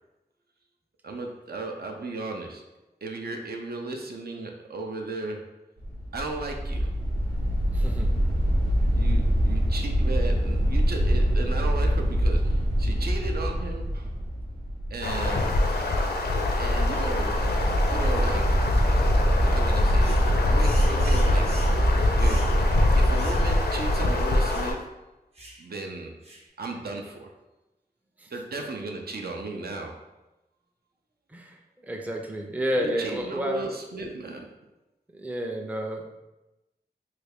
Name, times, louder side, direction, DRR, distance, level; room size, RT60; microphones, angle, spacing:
voice 1, 1.0-2.6 3.0-5.5 6.1-6.9 8.9-14.1 14.9-15.6 16.6-17.4 17.9-18.7 19.5-21.5 22.2-22.5 23.0-24.9 25.6-26.1 26.6-27.3 28.3-30.0 32.8-34.5, right 3 dB, 70° right, 2 dB, 0.5 m, -35 dB
sound 1, 5.8-23.6, equal, 90° right, 1.0 m, -24 dB
voice 2, 7.7-8.1 31.3-31.6 31.9-33.6 35.1-36.0, equal, 10° right, 2 dB, 0.4 m, -30 dB
sound 2, 15.0-24.7, left 2 dB, 75° left, 0.4 m, -25 dB
sound 3, 20.0-20.3 20.6-21.8 22.2-22.6 23.1-23.5 23.7-23.8 24.4-24.7 25.3-25.6 26.2-26.5, right 1 dB, 35° right, 0.7 m, -44 dB
3.2 x 2.3 x 3.4 m, 0.99 s
wide cardioid pair, 75°, 17 cm